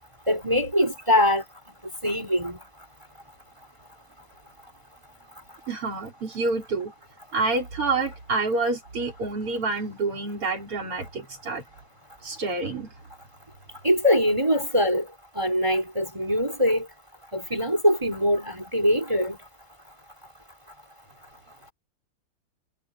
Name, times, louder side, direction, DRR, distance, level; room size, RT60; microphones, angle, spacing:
voice 1, 0.3-1.4 2.0-2.6 13.8-15.0 15.4-16.8 17.3-19.4, equal, 10° right, 4.4 m, -22 dB
voice 2, 5.7-6.9 7.3-11.6 12.2-12.9, right 3 dB, 85° right, 5.8 m, -28 dB
omnidirectional pair, 2.4 m